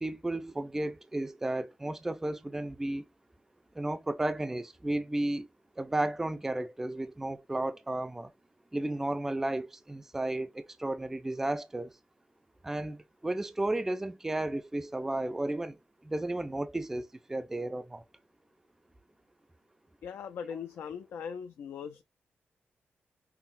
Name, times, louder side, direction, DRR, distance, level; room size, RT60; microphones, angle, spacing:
voice 1, 0.0-3.0 3.8-5.5 5.8-8.3 8.7-11.9 12.6-18.0, right 1 dB, 10° right, 0.3 m, -33 dB
voice 2, 20.0-22.0, left 7 dB, 85° left, 0.4 m, -40 dB
5.6 x 2.0 x 2.5 m
wide cardioid pair, 130°, 4 cm